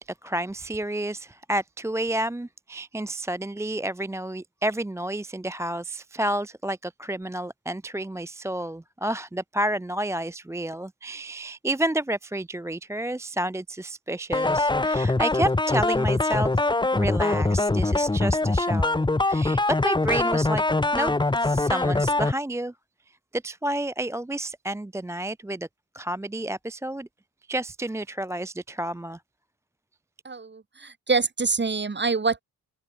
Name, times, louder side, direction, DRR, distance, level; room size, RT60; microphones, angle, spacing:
voice 1, 0.0-16.5 16.9-20.6 20.9-21.1 21.4-22.7 23.3-25.7 25.9-27.1 27.5-29.2, right 1 dB, 5° right, 0.6 m, -30 dB
sound 1, 14.3-22.3, left 2 dB, 10° left, 1.0 m, -23 dB
voice 2, 30.2-32.4, right 4 dB, 25° right, 3.1 m, -26 dB
wide cardioid pair, 145°, 41 cm